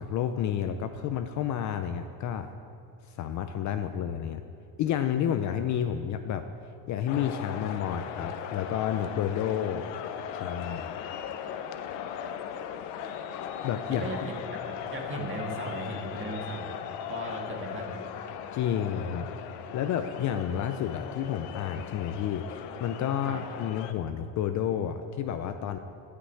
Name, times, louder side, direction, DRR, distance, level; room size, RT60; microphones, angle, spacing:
voice 1, 0.0-2.5 3.1-4.4 4.8-6.5 6.9-9.9 10.3-11.0 13.6-14.1 18.5-19.3 19.7-25.8, left 9 dB, 45° left, 8 dB, 0.5 m, -30 dB
sound 1, 7.1-23.9, left 8 dB, 80° left, 0.9 m, -38 dB
voice 2, 13.9-16.8 17.1-18.0 23.2-23.4, right 1 dB, 30° right, 1 dB, 1.7 m, -37 dB
12.5 x 6.0 x 8.4 m, 2.4 s
cardioid pair, 150°, 43 cm